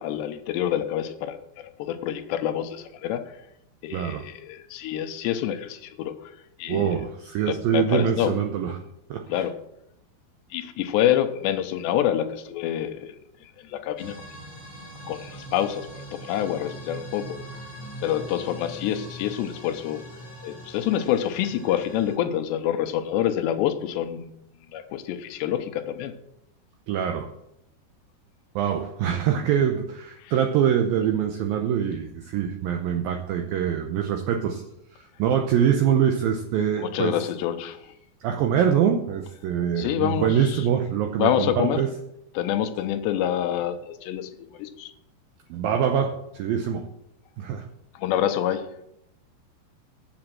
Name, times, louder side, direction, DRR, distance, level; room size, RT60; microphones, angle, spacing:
voice 1, 0.0-3.4 3.8-7.0 7.5-8.3 9.3-9.5 10.5-13.1 13.4-14.2 15.1-17.4 18.0-20.0 20.4-24.3 24.7-26.1 30.2-30.3 36.8-37.9 39.8-40.6 41.2-41.8 42.4-44.3 44.6-44.9 48.0-48.7, left 11 dB, 80° left, 8 dB, 2.8 m, -27 dB
voice 2, 3.9-4.3 6.7-8.8 9.1-9.4 26.9-27.3 28.6-34.6 34.9-37.2 38.2-41.9 45.5-46.9 47.4-47.7, right 8 dB, 80° right, 5 dB, 2.0 m, -24 dB
sound 1, 14.0-22.1, right 1 dB, 10° left, 4.6 m, -42 dB
8.6 x 7.8 x 7.5 m, 0.79 s
omnidirectional pair, 5.1 m